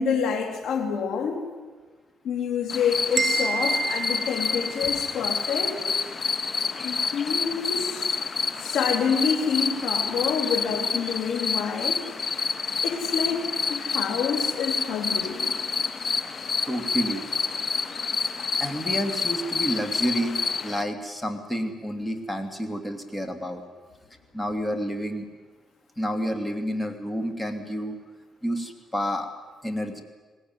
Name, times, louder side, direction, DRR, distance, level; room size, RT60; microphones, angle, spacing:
voice 1, 0.0-1.4 2.2-5.8 6.8-8.2 8.6-12.0 12.8-15.6, left 6 dB, 75° left, 3 dB, 3.8 m, -27 dB
sound 1, 2.7-20.8, left 5 dB, 40° left, 1.1 m, -28 dB
sound 2, 3.2-5.2, right 4 dB, 35° right, 2.4 m, -29 dB
voice 2, 16.7-17.2 18.6-23.6 24.3-25.3 26.0-28.0 28.4-29.3 29.6-30.0, equal, 10° left, 7 dB, 2.8 m, -29 dB
20.5 x 17.5 x 9.7 m, 1.4 s
cardioid pair, 90°, 0 cm